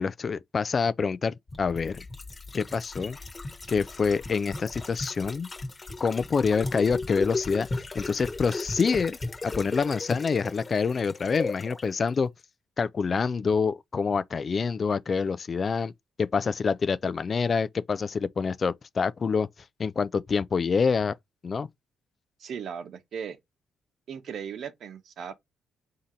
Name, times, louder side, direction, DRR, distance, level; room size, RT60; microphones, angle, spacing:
voice 1, 0.0-2.0 2.5-3.2 3.7-5.5 6.0-7.7 7.9-9.2 9.4-12.3 12.8-15.9 16.2-19.5 19.8-21.1 21.4-21.7, left 5 dB, 40° left, 0.3 m, -26 dB
sound 1, 1.5-11.8 12.1-12.2, left 3 dB, 25° left, 1.2 m, -36 dB
voice 2, 22.4-23.4 24.1-25.4, right 7 dB, 65° right, 0.8 m, -37 dB
3.7 x 2.8 x 4.3 m
cardioid pair, 90°, 0 cm